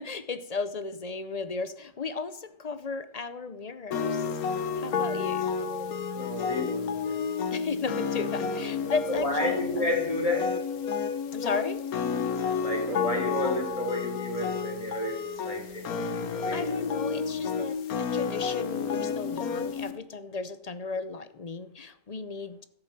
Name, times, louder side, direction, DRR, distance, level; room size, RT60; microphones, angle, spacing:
voice 1, 0.0-4.3 4.7-5.5 7.5-9.9 11.3-11.9 16.5-22.6, left 4 dB, 40° left, 13 dB, 0.6 m, -35 dB
sound 1, 3.9-19.9, left 5 dB, 85° left, 1.5 m, -31 dB
voice 2, 5.5-5.9 6.1-7.2 9.1-10.5 12.6-16.9, left 1 dB, 25° left, 1 dB, 3.6 m, -32 dB
13.5 x 9.0 x 7.3 m, 0.70 s
omnidirectional pair, 1.5 m